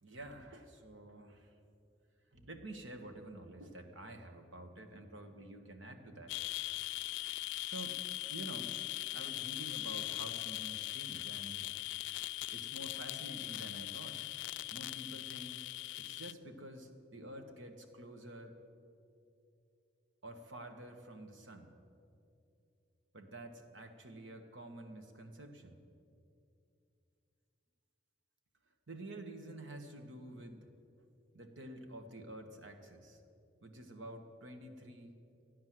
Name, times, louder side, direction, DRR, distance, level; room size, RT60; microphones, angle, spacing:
voice 1, 0.0-1.5 2.3-6.4 7.6-8.0 8.3-11.7 12.5-14.3 14.7-15.6 16.0-18.5 20.2-21.7 23.1-25.8 28.9-30.7 31.3-33.2 33.6-35.1, right 1 dB, 85° right, 5 dB, 1.4 m, -49 dB
sound 1, 6.3-16.3, left 15 dB, 75° left, 0.3 m, -40 dB
14.0 x 9.5 x 7.6 m, 2.6 s
head